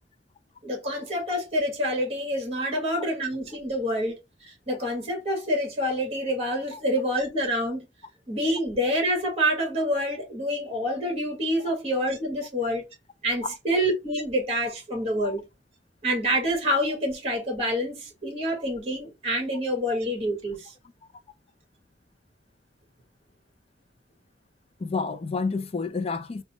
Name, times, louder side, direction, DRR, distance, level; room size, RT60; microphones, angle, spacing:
voice 1, 0.6-7.9 8.3-12.8 13.2-15.4 16.0-20.7, equal, 35° right, 1.9 m, -27 dB
voice 2, 24.8-26.4, left 4 dB, 35° left, 0.4 m, -30 dB
4.2 x 2.3 x 4.2 m
head